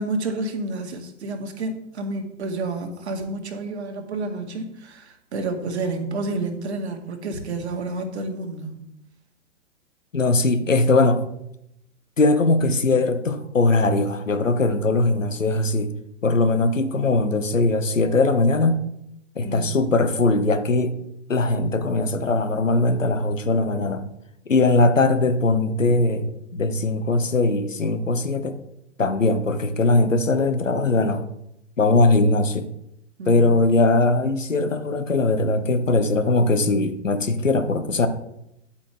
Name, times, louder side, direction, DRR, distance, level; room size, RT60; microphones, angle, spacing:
voice 1, 0.0-8.8 19.4-19.8 33.2-33.5, right 2 dB, 60° right, 4 dB, 2.0 m, -30 dB
voice 2, 10.1-11.2 12.2-15.9 16.2-18.8 19.3-20.9 21.3-24.1 24.5-28.5 29.0-31.3 31.8-32.7 33.3-38.1, left 2 dB, 80° left, 10 dB, 1.2 m, -20 dB
11.5 x 8.2 x 3.4 m, 0.81 s
figure-of-eight pair, 115°, 38 cm